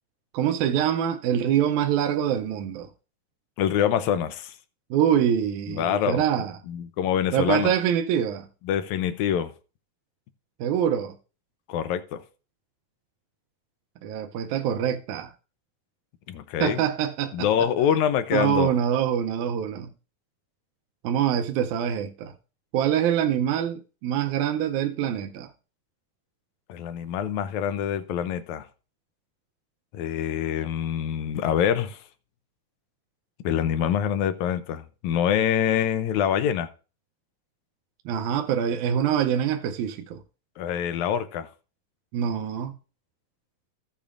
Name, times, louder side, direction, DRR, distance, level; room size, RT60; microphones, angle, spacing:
voice 1, 0.3-2.9 4.9-6.6 7.3-8.5 10.6-11.2 14.0-15.3 16.6-17.5 18.3-19.9 21.0-22.4 22.7-25.5 38.1-40.2 42.1-42.8, right 9 dB, 80° right, 2.1 m, -25 dB
voice 2, 3.6-4.5 5.7-6.2 6.7-7.7 8.7-9.5 11.7-12.2 16.3-16.8 17.3-18.7 26.7-28.7 29.9-32.0 33.4-36.7 40.6-41.5, left 9 dB, 80° left, 2.0 m, -25 dB
15.0 x 6.9 x 2.5 m
omnidirectional pair, 3.5 m